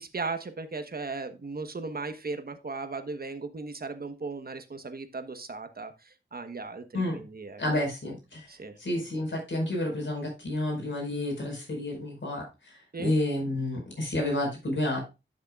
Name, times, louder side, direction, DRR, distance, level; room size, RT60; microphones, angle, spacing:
voice 1, 0.0-7.6 8.5-8.8 9.1-9.2 12.9-13.1, right 4 dB, 45° right, 8 dB, 1.2 m, -37 dB
voice 2, 7.6-8.5 8.8-15.0, left 1 dB, 65° left, 0 dB, 4.9 m, -30 dB
12.0 x 6.6 x 2.4 m, 0.27 s
wide cardioid pair, 85°, 21 cm